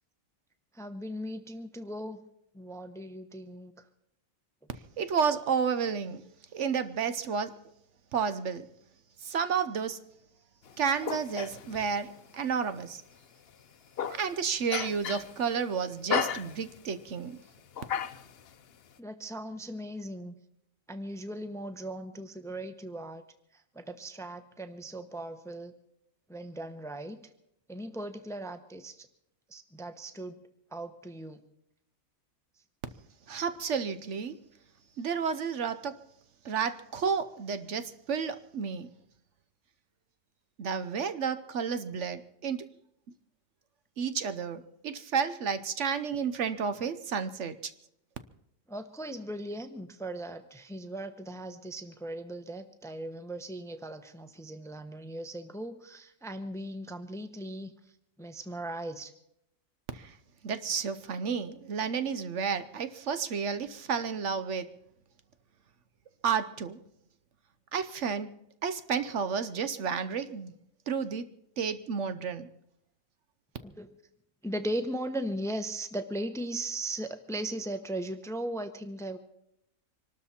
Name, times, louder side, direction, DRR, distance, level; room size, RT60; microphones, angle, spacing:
voice 1, 0.7-2.2 2.5-3.7 19.0-20.3 20.9-23.2 23.7-25.7 26.3-27.2 27.7-29.1 29.5-30.4 30.7-31.4 48.7-57.7 58.2-59.1 73.6-73.9 74.4-79.2, right 1 dB, 5° left, 0.8 m, -38 dB
voice 2, 5.0-6.2 6.5-7.6 8.1-8.7 9.2-10.0 10.8-13.0 14.1-17.4 33.3-34.4 35.0-36.0 36.4-38.9 40.6-42.7 44.0-47.7 59.9-60.1 60.4-64.7 66.2-66.8 67.7-68.4 68.6-70.5 70.9-71.3 71.6-72.5, right 6 dB, 65° right, 1.1 m, -31 dB
sound 1, 10.7-12.2 12.5-12.6 13.1-13.2 13.7-14.4 14.7-15.7 16.1-17.2 17.7-18.5, left 8 dB, 55° left, 0.9 m, -35 dB
25.0 x 13.0 x 4.3 m
omnidirectional pair, 1.4 m